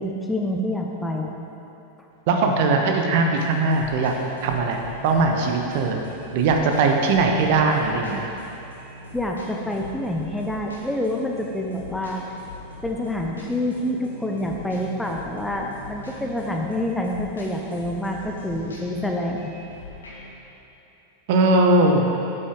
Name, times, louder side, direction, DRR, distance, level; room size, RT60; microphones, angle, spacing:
voice 1, 0.0-1.3 9.1-12.2 12.8-19.5, left 1 dB, 5° left, 0 dB, 0.8 m, -27 dB
voice 2, 2.3-4.1 4.4-6.0 6.3-8.3 21.3-22.0, right 3 dB, 50° right, 3 dB, 0.9 m, -20 dB
sound 1, 3.3-20.3, left 1 dB, 70° left, 1.7 m, -41 dB
9.6 x 7.8 x 3.9 m, 2.9 s
figure-of-eight pair, 90°, 0 cm